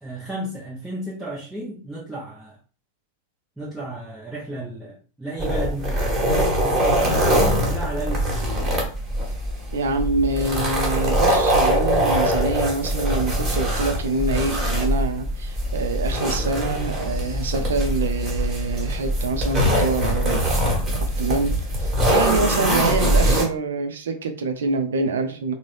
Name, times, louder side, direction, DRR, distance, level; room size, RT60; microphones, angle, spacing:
voice 1, 0.0-2.6 3.6-6.2 6.6-8.7, right 1 dB, 5° right, -7 dB, 0.9 m, -33 dB
sound 1, 5.4-23.4, equal, 20° right, 1.4 m, -22 dB
voice 2, 9.7-20.5 21.2-25.5, right 3 dB, 65° right, 7 dB, 0.5 m, -26 dB
3.7 x 2.1 x 3.2 m, 0.37 s
figure-of-eight pair, 90°, 0 cm